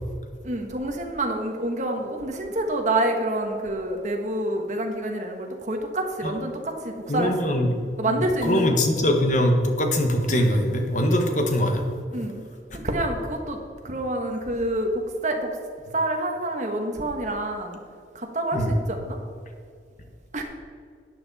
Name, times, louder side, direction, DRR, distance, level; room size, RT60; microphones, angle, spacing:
voice 1, 0.4-7.6 8.0-8.8 12.1-12.4 12.7-13.6 13.8-15.6 15.9-17.8 18.1-19.2 20.3-20.4, right 1 dB, 40° right, 3 dB, 1.4 m, -27 dB
voice 2, 7.1-7.7 8.1-11.8 18.5-18.7, equal, 40° left, 4 dB, 1.3 m, -22 dB
12.0 x 9.1 x 4.2 m, 2.2 s
head